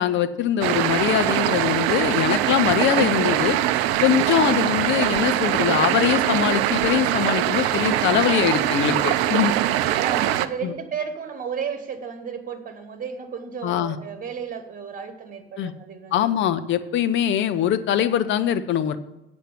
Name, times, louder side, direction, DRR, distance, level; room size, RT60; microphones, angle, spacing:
voice 1, 0.0-3.6 4.0-9.6 10.6-10.7 13.6-14.0 15.6-15.7 16.1-19.0, left 10 dB, 40° left, 12 dB, 0.8 m, -22 dB
sound 1, 0.6-10.5, right 13 dB, 50° right, 0.6 m, -22 dB
voice 2, 9.6-16.3, right 6 dB, 30° right, 9 dB, 1.5 m, -33 dB
8.3 x 6.1 x 7.4 m, 0.90 s
figure-of-eight pair, 70°, 30 cm